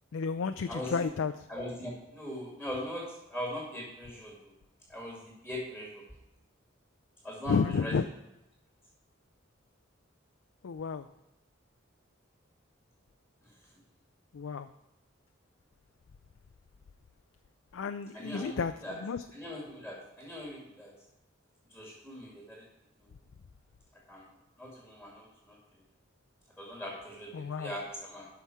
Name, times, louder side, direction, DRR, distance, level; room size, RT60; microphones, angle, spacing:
voice 1, 0.1-1.3 7.5-8.0 10.6-11.1 14.3-14.7 17.7-18.7 19.0-19.2 27.3-27.7, left 5 dB, 80° left, 9 dB, 0.4 m, -31 dB
voice 2, 0.7-1.0 1.5-4.5 4.9-6.0 7.2-8.0 13.4-13.6 18.1-18.6 18.8-19.0 19.3-20.9 21.7-22.7 23.0-23.1 24.1-24.3 24.6-25.6 26.6-28.3, equal, 5° right, -4 dB, 2.2 m, -40 dB
12.5 x 5.9 x 4.7 m, 0.91 s
head